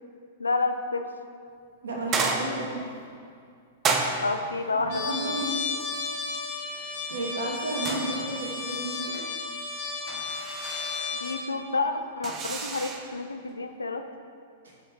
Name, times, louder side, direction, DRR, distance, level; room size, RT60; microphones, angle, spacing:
voice 1, 0.4-1.1 4.2-5.4 11.1-14.0, left 3 dB, 80° left, 7 dB, 0.8 m, -29 dB
voice 2, 1.8-2.8 5.1-5.6 7.1-9.1 14.6-14.7, right 1 dB, 65° right, -2 dB, 2.1 m, -32 dB
sound 1, 2.1-2.9 3.8-4.6 7.9-8.6 8.9-9.3 10.1-11.2 12.2-13.1, right 4 dB, 25° right, 1.0 m, -31 dB
Trumpet, 4.9-11.4, left 4 dB, 50° left, 2.0 m, -33 dB
11.0 x 5.7 x 5.0 m, 2.3 s
figure-of-eight pair, 100°, 0 cm